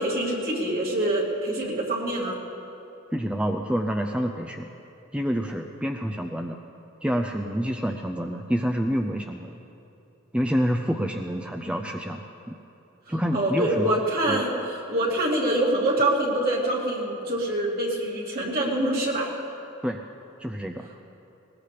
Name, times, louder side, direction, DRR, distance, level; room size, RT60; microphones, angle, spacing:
voice 1, 0.0-2.4 13.3-19.4, right 1 dB, 50° right, -3 dB, 2.7 m, -25 dB
voice 2, 3.1-4.7 5.1-6.6 7.0-9.6 10.3-12.5 13.1-14.0 14.3-14.4 19.8-20.0 20.4-20.9, equal, 5° right, 3 dB, 0.5 m, -27 dB
20.0 x 20.0 x 3.4 m, 2.8 s
head